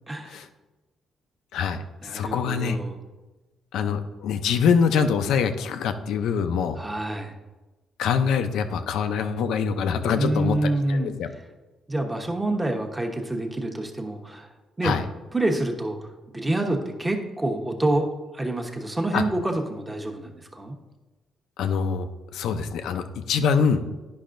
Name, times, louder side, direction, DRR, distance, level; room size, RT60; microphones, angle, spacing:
voice 1, 0.1-0.4 2.0-3.0 6.8-7.3 10.1-11.1 11.9-14.5 14.8-14.9 15.3-16.1 16.3-20.8, right 1 dB, 15° right, 3 dB, 1.0 m, -27 dB
voice 2, 1.5-2.8 3.7-6.8 8.0-10.6 10.9-11.3 14.8-15.0 19.1-19.2 21.6-22.1 22.3-23.8, left 6 dB, 80° left, 8 dB, 0.5 m, -24 dB
10.5 x 5.4 x 2.6 m, 1.2 s
cardioid pair, 90°, 0 cm